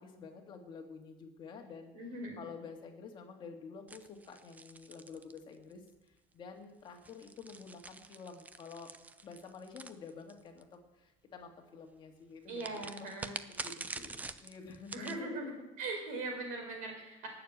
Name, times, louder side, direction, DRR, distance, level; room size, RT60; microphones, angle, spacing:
voice 1, 0.0-1.9 2.4-5.8 6.3-8.9 9.2-10.7 10.9-13.1 13.6-15.4, left 5 dB, 30° left, 2 dB, 2.1 m, -49 dB
voice 2, 1.9-2.4 12.5-13.4 14.9-15.5 15.8-17.3, right 2 dB, 50° right, 3 dB, 4.7 m, -40 dB
sound 1, 3.9-5.9 6.9-10.6 12.6-15.2, right 3 dB, 10° right, 0.4 m, -46 dB
18.5 x 6.9 x 8.2 m, 1.0 s
cardioid pair, 175°, 16 cm